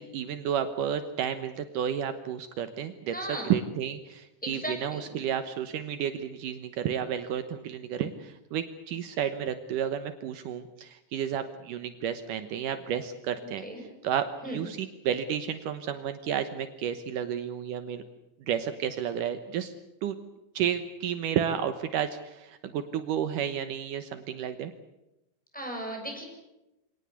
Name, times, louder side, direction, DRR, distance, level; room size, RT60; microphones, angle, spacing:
voice 1, 0.0-3.1 3.4-18.0 18.5-19.7 20.0-20.2 20.5-24.7, right 9 dB, 85° right, 9 dB, 1.8 m, -31 dB
voice 2, 3.1-3.5 4.4-5.1 13.6-13.8 14.4-14.6 25.5-26.2, right 1 dB, ahead, 1 dB, 6.4 m, -36 dB
26.5 x 18.5 x 8.3 m, 0.93 s
omnidirectional pair, 5.4 m